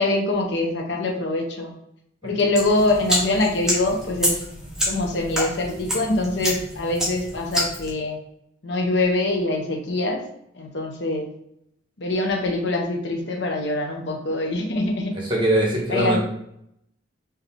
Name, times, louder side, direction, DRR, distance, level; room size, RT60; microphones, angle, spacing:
voice 1, 0.0-1.7 2.2-4.4 4.9-8.2 8.6-10.2 10.6-11.3 12.0-15.1 15.9-16.2, left 2 dB, 65° left, 2 dB, 0.9 m, -24 dB
sound 1, 2.5-7.9, equal, 5° right, 0.9 m, -28 dB
voice 2, 15.1-16.2, right 1 dB, 25° right, -3 dB, 1.2 m, -21 dB
3.9 x 2.8 x 3.3 m, 0.75 s
head